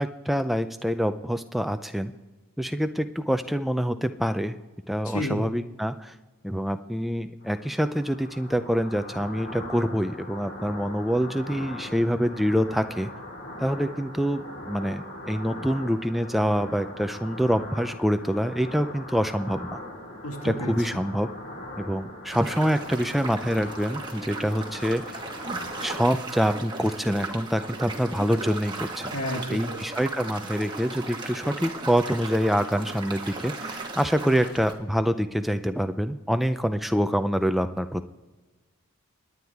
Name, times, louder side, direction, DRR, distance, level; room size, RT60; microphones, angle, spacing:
voice 1, 0.0-2.1 2.6-4.6 4.9-6.1 6.4-13.1 13.6-19.8 20.4-21.3 21.8-25.2 25.8-29.1 29.5-38.0, equal, ahead, 9 dB, 0.4 m, -26 dB
voice 2, 5.0-5.5 20.2-20.7 29.1-29.8, equal, 80° left, 2 dB, 1.9 m, -31 dB
sound 1, 7.4-26.0, left 1 dB, 45° left, 2.7 m, -40 dB
sound 2, 22.3-34.7, right 3 dB, 20° right, 1.4 m, -36 dB
28.5 x 9.6 x 3.5 m, 1.2 s
head